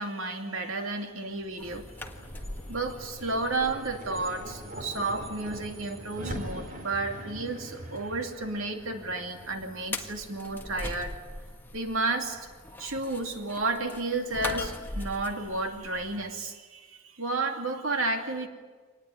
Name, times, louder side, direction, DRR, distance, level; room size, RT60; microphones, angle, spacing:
voice 1, 0.0-1.9 2.7-11.2 11.7-12.4 12.8-18.5, right 2 dB, 80° right, 4 dB, 2.6 m, -32 dB
sound 1, 1.2-11.8, equal, 45° right, 4.0 m, -43 dB
sound 2, 1.6-16.2, left 2 dB, 10° left, 1.7 m, -42 dB
25.5 x 20.0 x 9.5 m, 1.4 s
head